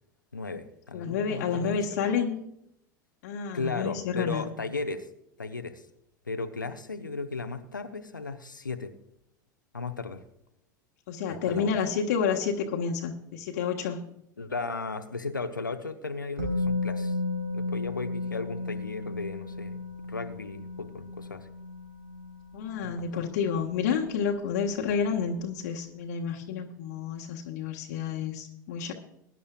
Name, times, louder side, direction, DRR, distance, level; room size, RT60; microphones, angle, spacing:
voice 1, 0.3-1.8 3.5-5.1 5.4-5.8 6.3-8.9 9.7-10.2 11.4-11.7 14.4-17.2 17.5-19.8 20.1-21.5 22.8-23.2 24.8-24.9, left 3 dB, 80° left, 8 dB, 0.9 m, -35 dB
voice 2, 0.9-2.5 3.2-4.5 11.1-14.0 22.5-28.9, left 6 dB, 55° left, -1 dB, 1.4 m, -30 dB
Musical instrument, 16.4-24.3 24.6-24.7, left 3 dB, 55° right, 4.1 m, -34 dB
21.5 x 11.0 x 2.4 m, 0.76 s
figure-of-eight pair, 80°, 10 cm